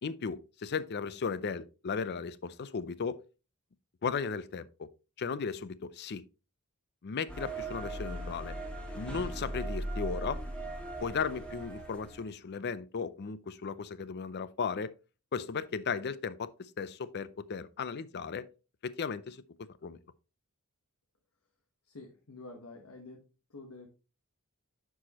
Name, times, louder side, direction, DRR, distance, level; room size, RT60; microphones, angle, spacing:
voice 1, 0.0-3.2 4.0-4.9 5.2-6.2 7.0-8.5 8.9-10.4 11.0-14.9 15.3-18.5 18.8-19.4 19.8-20.0, left 5 dB, 50° left, 0.5 m, -36 dB
sound 1, 7.3-12.3, right 1 dB, 5° left, 1.6 m, -38 dB
voice 2, 21.8-23.2 23.5-23.9, left 3 dB, 85° left, 1.2 m, -48 dB
9.9 x 4.8 x 2.9 m
head